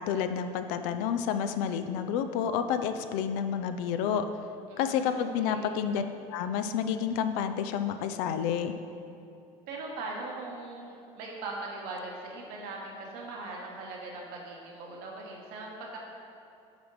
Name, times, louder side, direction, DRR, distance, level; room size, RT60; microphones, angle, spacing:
voice 1, 0.0-4.3 4.8-6.0 6.3-8.8, left 8 dB, 75° left, 9 dB, 0.4 m, -29 dB
voice 2, 4.7-5.7 9.7-16.0, right 2 dB, 70° right, -2 dB, 1.3 m, -40 dB
7.3 x 3.5 x 4.8 m, 2.7 s
supercardioid pair, 80°, 16 cm